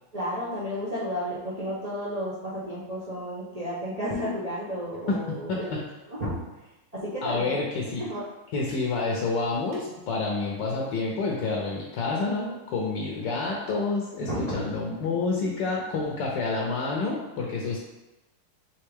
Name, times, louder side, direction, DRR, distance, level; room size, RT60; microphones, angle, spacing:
voice 1, 0.1-5.7 6.1-6.4 6.9-7.6 8.0-8.2 14.2-14.6, equal, 75° right, -9 dB, 0.3 m, -32 dB
voice 2, 5.1-5.8 7.2-8.0 8.5-17.8, left 3 dB, 70° left, -2 dB, 1.2 m, -28 dB
sound 1, 8.7-8.9 9.5-10.0, right 1 dB, 50° right, 1.7 m, -48 dB
4.3 x 3.6 x 3.4 m, 1.0 s
omnidirectional pair, 2.2 m